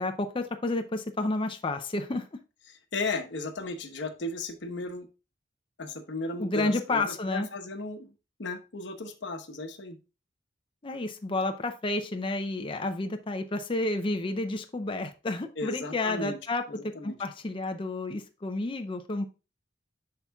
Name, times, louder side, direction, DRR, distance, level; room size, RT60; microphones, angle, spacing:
voice 1, 0.0-2.3 6.4-7.5 10.8-19.3, left 2 dB, 30° left, 6 dB, 0.5 m, -30 dB
voice 2, 2.7-5.1 5.8-8.1 8.4-10.0 15.6-16.4 16.7-17.1, left 3 dB, 65° left, 7 dB, 1.0 m, -35 dB
8.1 x 5.7 x 2.3 m, 0.31 s
head